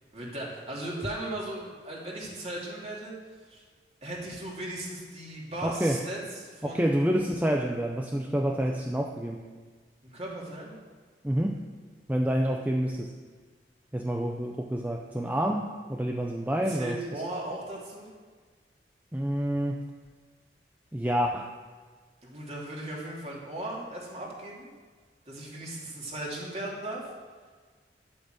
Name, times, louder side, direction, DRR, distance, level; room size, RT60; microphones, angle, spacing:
voice 1, 0.1-3.1 3.5-3.6 4.0-6.9 10.0-10.7 16.7-18.1 22.2-24.7 25.2-27.1, right 1 dB, 35° right, -4 dB, 3.2 m, -37 dB
voice 2, 5.6-6.0 6.6-9.4 11.2-11.7 12.1-13.2 13.9-17.0 19.1-19.9 20.9-21.5, equal, 10° right, 2 dB, 0.6 m, -28 dB
11.5 x 8.5 x 7.9 m, 1.5 s
head